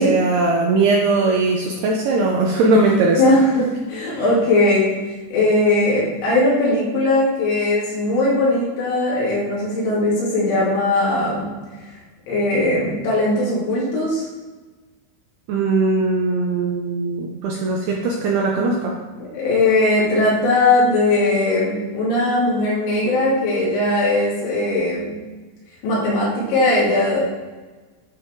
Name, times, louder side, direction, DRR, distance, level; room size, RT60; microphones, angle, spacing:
voice 1, 0.0-3.2 4.1-4.2 15.5-18.9, right 3 dB, 80° right, -1 dB, 2.4 m, -19 dB
voice 2, 3.2-4.9 5.3-11.5 12.3-14.3 19.2-25.2 25.8-27.3, left 2 dB, 70° left, -7 dB, 5.1 m, -19 dB
11.5 x 4.8 x 4.5 m, 1.3 s
omnidirectional pair, 5.6 m